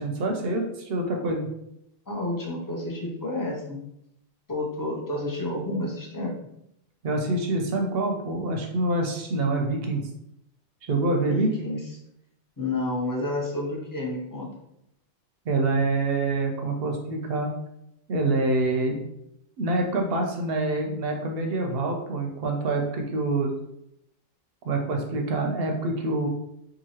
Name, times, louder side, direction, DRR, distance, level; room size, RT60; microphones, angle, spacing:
voice 1, 0.0-1.5 7.0-10.0 10.9-11.5 15.5-17.5 18.1-19.0 19.6-23.5 24.6-26.3, right 2 dB, 65° right, 2 dB, 0.7 m, -26 dB
voice 2, 2.1-3.8 4.5-6.3 11.2-11.8 12.6-14.5, left 2 dB, 25° left, -3 dB, 0.5 m, -30 dB
2.8 x 2.6 x 2.8 m, 0.79 s
omnidirectional pair, 1.2 m